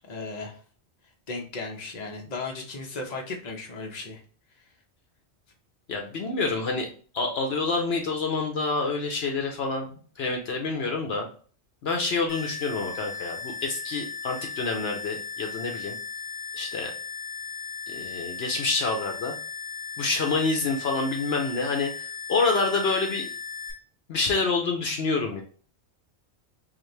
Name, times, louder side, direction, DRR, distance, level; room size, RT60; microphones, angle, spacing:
voice 1, 0.0-0.6 1.3-4.2, left 3 dB, 40° left, 1 dB, 0.9 m, -36 dB
voice 2, 5.9-11.3 11.8-15.9 16.5-16.9 17.9-19.3 20.0-23.3 24.1-25.4, left 3 dB, 65° left, 2 dB, 1.0 m, -27 dB
sound 1, 12.3-23.7, left 5 dB, 5° left, 1.9 m, -37 dB
4.1 x 2.7 x 3.2 m, 0.41 s
omnidirectional pair, 1.1 m